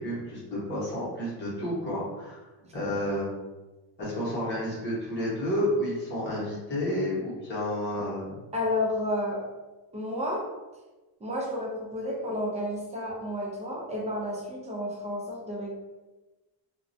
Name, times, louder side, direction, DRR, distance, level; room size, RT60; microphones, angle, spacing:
voice 1, 0.0-2.4 2.7-3.4 4.0-8.3, left 1 dB, 25° left, -7 dB, 0.9 m, -30 dB
voice 2, 8.5-9.5 9.9-10.4 11.2-15.8, left 1 dB, 15° right, -3 dB, 0.5 m, -31 dB
2.3 x 2.1 x 2.5 m, 1.1 s
cardioid pair, 150°, 41 cm